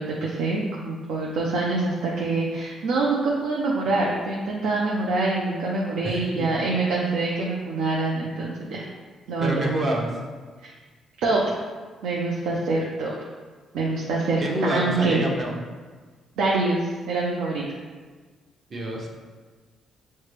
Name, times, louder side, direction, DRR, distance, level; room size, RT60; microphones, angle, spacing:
voice 1, 0.0-8.8 9.3-9.7 10.6-10.7 11.2-11.6 12.0-13.1 13.7-15.2 16.4-17.8, right 3 dB, 85° right, -3 dB, 0.5 m, -25 dB
voice 2, 6.1-6.5 9.4-10.1 14.4-15.6 18.7-19.1, right 1 dB, 45° right, -1 dB, 0.8 m, -27 dB
6.4 x 2.2 x 3.3 m, 1.4 s
cardioid pair, 90°, 0 cm